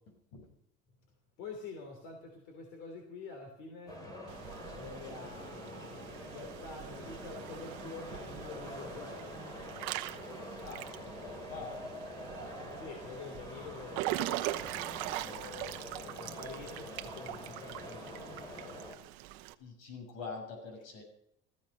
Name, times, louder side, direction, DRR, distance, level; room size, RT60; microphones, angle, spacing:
voice 1, 1.4-4.0 4.7-9.4 12.8-14.0 15.2-18.4, left 4 dB, 60° left, 3 dB, 3.2 m, -47 dB
sound 1, 3.9-19.0, left 1 dB, 20° left, 2.7 m, -46 dB
Water / Splash splatter / Drip, 4.3-19.5, right 16 dB, 80° right, 1.0 m, -42 dB
voice 2, 10.6-11.8 19.6-21.0, left 4 dB, 75° left, 3 dB, 6.5 m, -45 dB
15.0 x 15.0 x 5.4 m, 0.76 s
cardioid pair, 175°, 21 cm